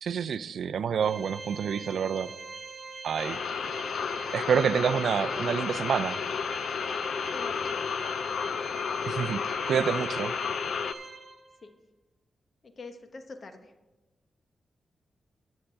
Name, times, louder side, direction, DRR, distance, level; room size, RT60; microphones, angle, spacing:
voice 1, 0.0-2.3 3.0-3.4 4.3-6.2 9.0-10.3, right 7 dB, 75° right, 14 dB, 0.4 m, -28 dB
Organ, 1.0-11.7, right 4 dB, 35° right, 0.7 m, -43 dB
sound 1, 3.2-10.9, left 6 dB, 75° left, 0.4 m, -32 dB
voice 2, 3.5-3.9 7.3-7.8 11.6-11.7 12.6-13.7, left 3 dB, 50° left, 7 dB, 1.0 m, -45 dB
10.0 x 6.7 x 5.7 m, 1.1 s
cardioid pair, 100°, 0 cm